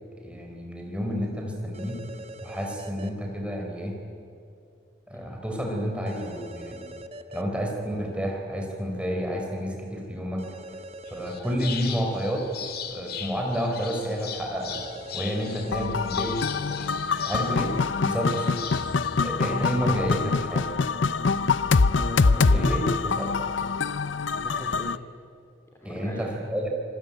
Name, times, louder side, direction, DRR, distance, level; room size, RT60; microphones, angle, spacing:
voice 1, 0.1-2.0 2.4-4.0 5.1-7.0 7.3-10.4 11.1-12.5 12.9-14.8 15.1-16.9 17.3-17.7 18.0-18.6 19.2-20.7 22.5-23.4 25.8-26.7, equal, 5° right, 0 dB, 4.5 m, -30 dB
sound 1, 1.7-3.1 6.1-7.4 10.4-11.7 14.7-16.1, right 1 dB, 35° right, 1.2 m, -42 dB
sound 2, 11.0-20.0, left 7 dB, 55° left, 2.2 m, -39 dB
sound 3, 15.7-25.0, left 4 dB, 80° left, 0.7 m, -24 dB
voice 2, 21.9-22.9 24.3-24.9 25.8-26.4, equal, 15° left, -1 dB, 2.7 m, -39 dB
26.0 x 20.0 x 9.1 m, 2.6 s
head